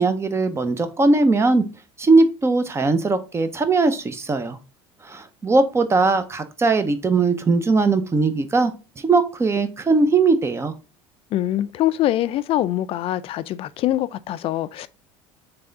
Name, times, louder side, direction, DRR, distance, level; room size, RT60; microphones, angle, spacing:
voice 1, 0.0-1.6 2.0-4.6 5.0-10.7, right 3 dB, 20° right, 0.7 m, -19 dB
voice 2, 11.3-14.9, left 13 dB, 50° left, 0.4 m, -23 dB
3.5 x 3.3 x 3.9 m
supercardioid pair, 95°, 13 cm